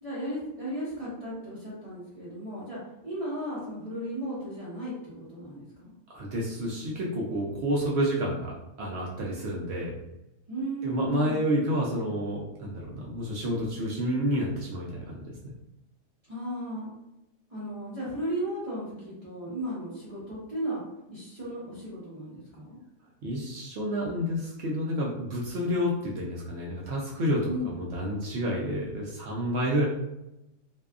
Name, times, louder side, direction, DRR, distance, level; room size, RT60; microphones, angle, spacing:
voice 1, 0.0-5.9 10.5-11.4 16.3-16.9 17.5-20.8 21.1-22.8 27.4-27.7, right 1 dB, 30° right, -10 dB, 0.8 m, -35 dB
voice 2, 6.1-10.0 10.8-15.5 23.2-29.8, equal, 65° right, -3 dB, 0.7 m, -29 dB
2.7 x 2.3 x 2.4 m, 0.88 s
omnidirectional pair, 1.4 m